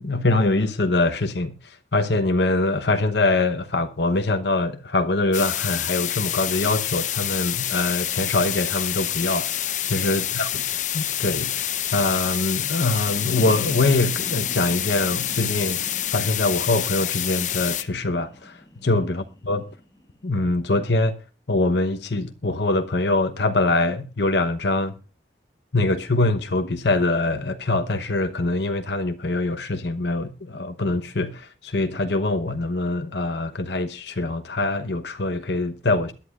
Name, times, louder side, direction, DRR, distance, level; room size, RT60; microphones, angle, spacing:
voice 1, 0.0-10.5 10.9-15.8 16.1-19.7 20.2-21.2 21.5-24.9 25.7-36.1, left 2 dB, 80° left, 1.0 m, -23 dB
sound 1, 5.3-17.8, left 11 dB, 45° left, 0.8 m, -27 dB
sound 2, 13.0-20.5, left 1 dB, 20° left, 1.7 m, -43 dB
21.5 x 11.5 x 2.5 m
head